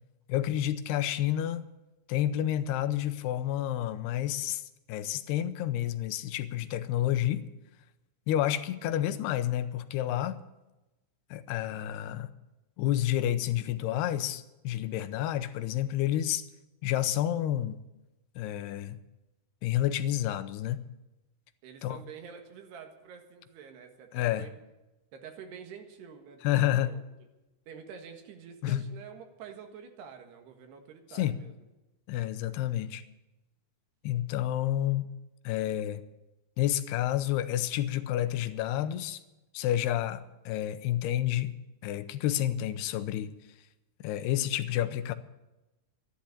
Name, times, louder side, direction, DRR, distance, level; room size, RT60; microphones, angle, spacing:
voice 1, 0.3-1.7 2.1-4.6 4.9-7.4 8.3-10.4 11.3-12.3 12.8-16.4 16.8-17.8 18.4-19.0 19.6-20.8 21.8-22.0 24.1-24.5 26.4-26.9 28.6-28.8 31.1-31.4 32.1-33.0 34.0-35.0 35.4-36.0 36.6-39.2 39.5-41.5 41.8-43.3 44.0-45.1, left 12 dB, 85° left, 12 dB, 2.8 m, -29 dB
voice 2, 21.6-24.5 25.1-27.0 27.7-31.5, right 7 dB, 85° right, 4 dB, 3.8 m, -47 dB
13.5 x 11.5 x 8.4 m, 0.99 s
omnidirectional pair, 4.6 m